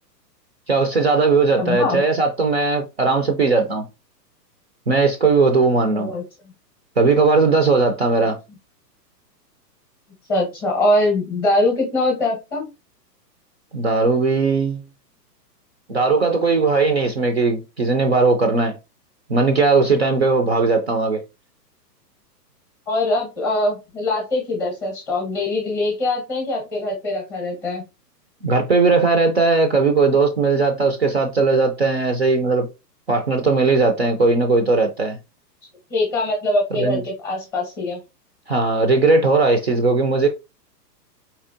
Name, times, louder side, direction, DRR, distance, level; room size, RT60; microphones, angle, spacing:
voice 1, 0.7-3.8 4.9-6.1 7.0-8.4 13.7-14.8 15.9-18.7 19.3-21.2 28.4-32.7 33.1-35.2 36.7-37.0 38.5-40.3, right 3 dB, 45° right, 0.4 m, -18 dB
voice 2, 1.6-2.0 5.9-6.2 10.3-12.7 22.9-27.8 35.9-38.0, left 2 dB, 15° left, 0.7 m, -22 dB
4.4 x 2.8 x 2.5 m
hypercardioid pair, 170°, 50 cm